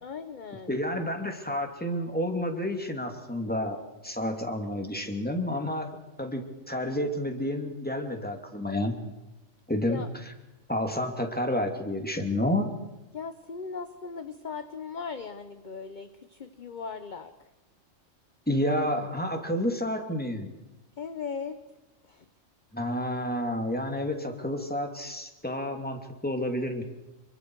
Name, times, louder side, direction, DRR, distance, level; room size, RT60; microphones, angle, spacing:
voice 1, 0.0-0.7 9.8-10.1 13.1-17.3 21.0-21.6 22.1-22.2, left 5 dB, 40° left, 9 dB, 1.0 m, -38 dB
voice 2, 0.7-3.8 4.0-5.9 6.2-8.9 9.7-10.3 10.7-12.7 18.5-20.5 22.7-26.8, left 1 dB, 5° left, 4 dB, 2.5 m, -30 dB
27.0 x 24.0 x 4.7 m, 1.0 s
omnidirectional pair, 1.4 m